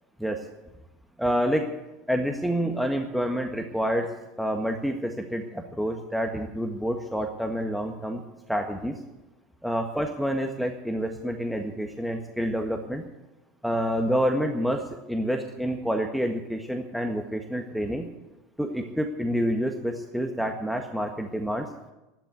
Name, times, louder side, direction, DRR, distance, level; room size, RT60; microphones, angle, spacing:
voice 1, 1.2-1.7 2.1-8.2 8.5-8.9 9.6-13.1 13.6-18.1 18.6-21.7, equal, ahead, 3 dB, 1.6 m, -28 dB
12.5 x 12.0 x 8.6 m, 1.0 s
hypercardioid pair, 80°, 0 cm